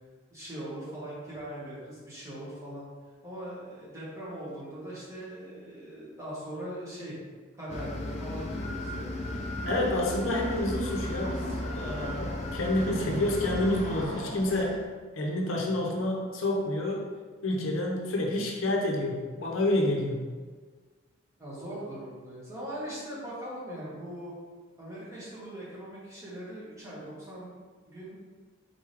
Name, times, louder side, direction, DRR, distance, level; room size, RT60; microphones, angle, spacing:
voice 1, 0.3-2.9 3.2-7.2 7.6-9.2 21.4-24.3 24.8-27.5 27.9-28.2, right 1 dB, 15° right, -8 dB, 1.1 m, -40 dB
sound 1, 7.7-14.1, left 1 dB, 30° left, 0.4 m, -35 dB
voice 2, 9.6-11.5 11.7-14.8 15.2-17.0 17.4-20.3, left 1 dB, 70° left, -1 dB, 0.6 m, -28 dB
sound 2, 10.4-14.8, equal, 70° right, 0.9 m, -41 dB
4.0 x 3.4 x 3.3 m, 1.4 s
head